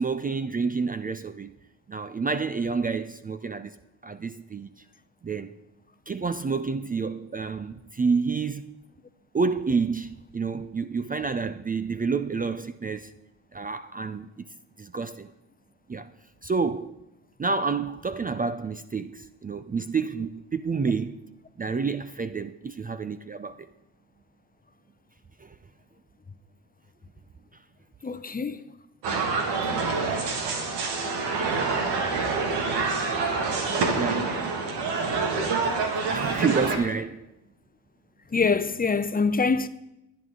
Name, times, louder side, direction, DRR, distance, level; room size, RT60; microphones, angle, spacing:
voice 1, 0.0-1.5 1.9-3.7 4.0-4.7 5.2-5.6 6.1-8.7 9.3-13.1 13.5-14.4 14.8-15.3 15.9-16.1 16.4-16.9 17.4-21.3 21.6-23.7 25.4-25.5 33.9-34.3 35.7-35.8 36.1-37.3, right 4 dB, 20° right, 0.5 m, -29 dB
voice 2, 28.0-28.6 32.8-32.9 33.9-34.0 38.3-39.7, left 4 dB, 20° left, 0.7 m, -25 dB
sound 1, 29.0-36.8, right 4 dB, 85° right, 2.1 m, -27 dB
23.5 x 9.5 x 3.8 m
supercardioid pair, 70°, 40 cm